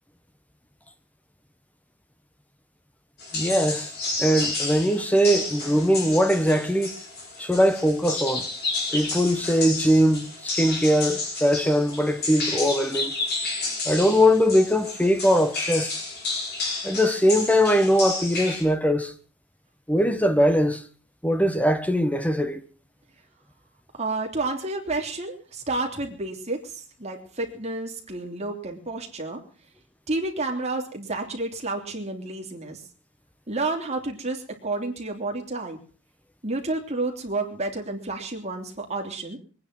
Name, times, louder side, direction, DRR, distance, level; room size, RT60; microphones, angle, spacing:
sound 1, 3.2-18.6, left 3 dB, 50° left, 5.6 m, -31 dB
voice 1, 3.3-3.9 4.2-6.9 7.4-8.5 8.9-13.1 13.8-16.0 16.8-19.1 19.9-20.8 21.2-22.6, equal, 5° left, 1.2 m, -21 dB
voice 2, 23.9-29.4 30.1-32.8 33.5-35.8 36.4-39.4, right 2 dB, 30° right, 3.2 m, -30 dB
22.5 x 9.7 x 6.1 m
head